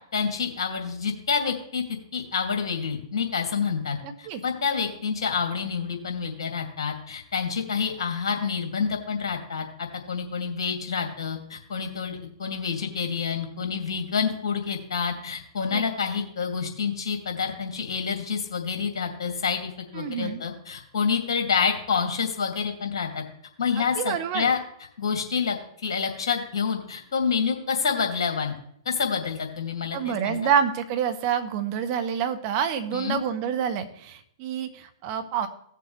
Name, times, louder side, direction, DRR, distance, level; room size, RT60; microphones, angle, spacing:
voice 1, 0.1-1.8 2.1-23.2 23.6-24.6 25.0-25.6 25.8-28.5 28.8-30.5 32.9-33.2, left 6 dB, 65° left, 3 dB, 2.5 m, -28 dB
voice 2, 4.0-4.4 15.7-15.8 19.9-20.4 23.8-24.5 29.9-35.5, right 8 dB, 40° right, 8 dB, 1.3 m, -27 dB
17.0 x 6.9 x 3.3 m, 0.69 s
hypercardioid pair, 115°, 3 cm